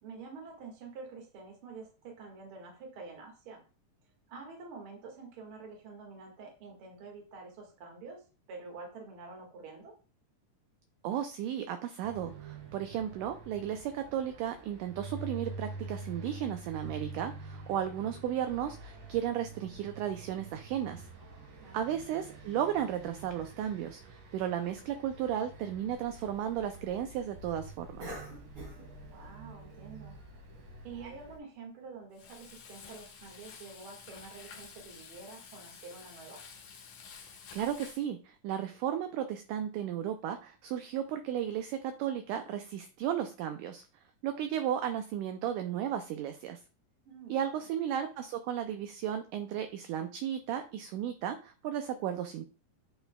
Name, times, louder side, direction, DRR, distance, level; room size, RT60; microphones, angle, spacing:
voice 1, 0.0-3.6 4.3-9.9 21.6-21.9 29.1-30.2 30.8-36.4 47.1-47.3, right 4 dB, 45° right, 1 dB, 2.0 m, -48 dB
voice 2, 11.0-21.1 21.7-28.1 37.5-43.9 44.2-46.6 47.3-52.4, right 10 dB, 85° right, 7 dB, 1.8 m, -34 dB
sound 1, 12.0-31.4, right 3 dB, 65° right, 3.0 m, -47 dB
Cough, 25.9-31.4, left 1 dB, 25° right, 2.7 m, -50 dB
Frying (food), 32.1-38.1, left 6 dB, 65° left, 2.1 m, -51 dB
8.5 x 5.6 x 2.2 m, 0.36 s
omnidirectional pair, 4.2 m